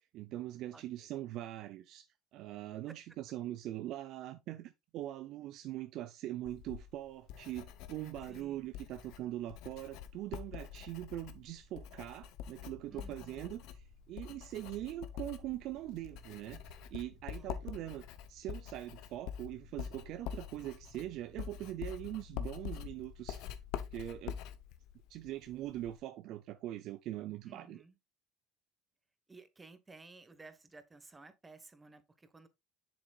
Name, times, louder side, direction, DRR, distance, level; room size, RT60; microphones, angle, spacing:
voice 1, 0.1-2.1 2.3-18.0 18.3-23.5 23.9-24.4 25.1-27.8, right 14 dB, 60° right, 0.5 m, -42 dB
Writing, 6.5-26.0, left 10 dB, 65° left, 0.9 m, -46 dB
voice 2, 8.3-8.7 12.9-13.5 17.3-17.9 27.5-27.9 29.3-32.5, right 3 dB, 15° right, 1.3 m, -56 dB
sound 1, 10.4-24.5, right 6 dB, 35° right, 2.4 m, -65 dB
7.4 x 7.0 x 2.4 m
supercardioid pair, 95°, 0 cm